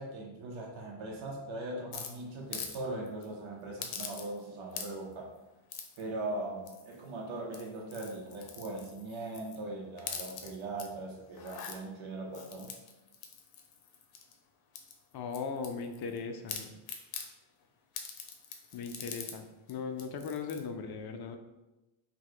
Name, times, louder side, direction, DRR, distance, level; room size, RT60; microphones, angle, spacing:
voice 1, 0.0-5.3 6.0-12.7, right 2 dB, 70° right, 0 dB, 0.8 m, -40 dB
sound 1, 1.9-2.8 3.1-3.2 3.8-4.4 4.7-5.1 5.7-6.0 6.7-7.1 7.4-9.6 10.0-10.9 11.3-11.8 12.3-14.3 14.7-16.2 16.5-17.3 17.9-19.4 19.7-19.8 20.0-20.6, left 7 dB, 75° left, 0.8 m, -43 dB
voice 2, 15.1-16.7 18.7-21.4, left 5 dB, 50° left, 6 dB, 0.5 m, -38 dB
5.6 x 2.2 x 3.7 m, 1.0 s
cardioid pair, 150°, 50 cm